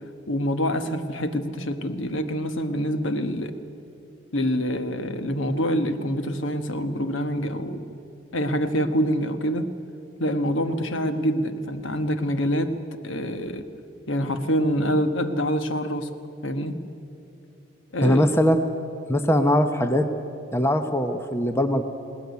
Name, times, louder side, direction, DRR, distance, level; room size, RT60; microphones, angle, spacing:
voice 1, 0.3-3.5 4.3-7.8 8.3-9.7 10.2-12.8 13.0-13.6 14.1-16.1 16.4-16.8 17.9-18.3, equal, 65° left, 9 dB, 1.2 m, -26 dB
voice 2, 18.0-18.6 19.1-20.1 20.5-21.8, equal, 10° left, 7 dB, 0.8 m, -21 dB
20.0 x 18.0 x 9.5 m, 2.9 s
head